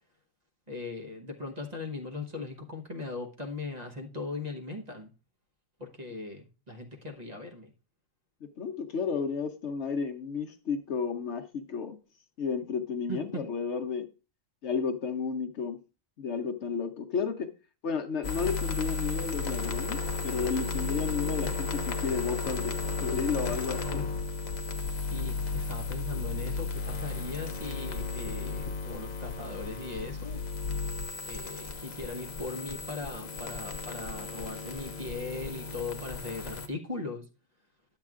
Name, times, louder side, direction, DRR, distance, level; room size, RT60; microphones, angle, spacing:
voice 1, 0.7-5.1 5.8-7.7 13.1-13.4 23.8-24.1 25.1-30.4 31.2-37.3, left 3 dB, 35° right, 1.1 m, -39 dB
voice 2, 8.6-12.0 12.4-14.1 14.6-15.8 16.2-17.5 17.8-20.0 20.2-24.0, left 5 dB, 65° left, 1.0 m, -32 dB
sound 1, 18.2-36.7, left 4 dB, 45° left, 0.7 m, -34 dB
10.5 x 7.5 x 2.4 m
omnidirectional pair, 1.4 m